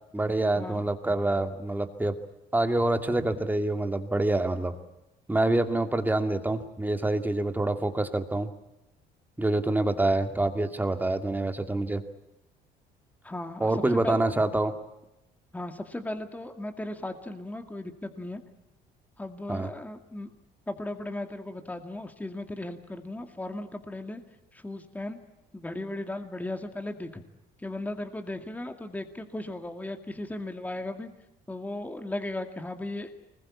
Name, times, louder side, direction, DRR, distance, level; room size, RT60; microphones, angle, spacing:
voice 1, 0.1-2.2 2.5-4.7 5.3-8.5 9.4-12.0 13.6-14.7 19.5-19.7, right 2 dB, 10° right, 7 dB, 2.3 m, -26 dB
voice 2, 13.2-14.3 15.5-18.4 19.2-20.3 20.7-24.2 24.5-25.2 25.5-27.2 27.6-31.1 31.5-33.1, left 1 dB, 10° left, 6 dB, 2.2 m, -36 dB
25.0 x 21.0 x 8.5 m, 0.93 s
cardioid pair, 110°, 17 cm